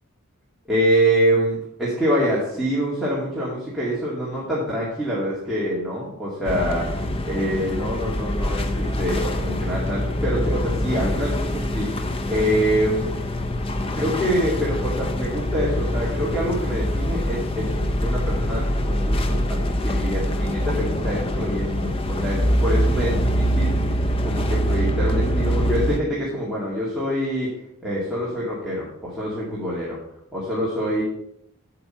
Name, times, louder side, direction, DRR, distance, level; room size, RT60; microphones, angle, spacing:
voice 1, 0.7-6.9 7.2-13.1 13.9-24.0 24.2-27.5 27.8-30.0 30.3-31.0, equal, ahead, -8 dB, 2.2 m, -25 dB
sound 1, 6.4-26.0, equal, 25° left, 0.5 m, -24 dB
8.6 x 7.9 x 4.4 m, 0.73 s
head